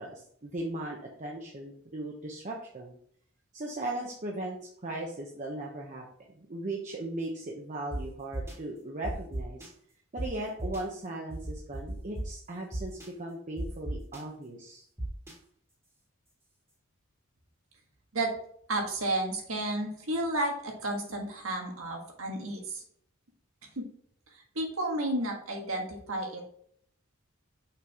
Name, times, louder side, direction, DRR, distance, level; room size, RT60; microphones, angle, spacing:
voice 1, 0.0-3.0 3.5-6.1 6.4-9.7 10.1-14.8, right 1 dB, 35° right, -1 dB, 0.9 m, -38 dB
sound 1, 7.9-8.0 8.3-8.5 9.0-9.7 10.2-10.3 10.6-10.8 11.3-12.2 12.7-13.1 13.6-14.2 15.0-15.3, right 1 dB, 15° right, 1.6 m, -34 dB
voice 2, 18.7-22.8 23.8-23.9 24.5-26.5, right 1 dB, 85° right, 1 dB, 1.6 m, -32 dB
6.0 x 4.6 x 3.5 m, 0.62 s
head